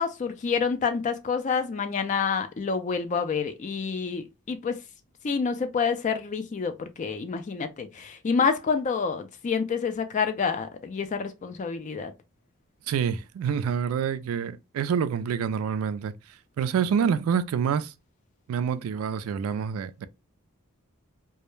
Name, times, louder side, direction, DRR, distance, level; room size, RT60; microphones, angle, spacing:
voice 1, 0.0-4.8 5.2-12.1, left 5 dB, 35° left, 0.3 m, -28 dB
voice 2, 12.9-16.1 16.6-17.9 18.5-20.1, right 7 dB, 80° right, 0.3 m, -27 dB
2.2 x 2.0 x 3.0 m
head